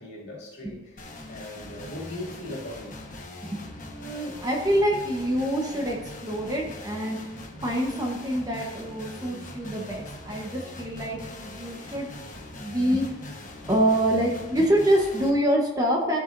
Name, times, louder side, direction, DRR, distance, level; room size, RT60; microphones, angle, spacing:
voice 1, 0.0-3.0, left 1 dB, 60° left, 2.5 m, -39 dB
sound 1, 1.0-15.3, left 1 dB, 45° left, 1.3 m, -41 dB
voice 2, 3.4-7.2 7.6-12.1 12.6-13.1 13.7-16.2, right 1 dB, 20° right, 1.0 m, -26 dB
14.0 x 7.5 x 2.6 m
head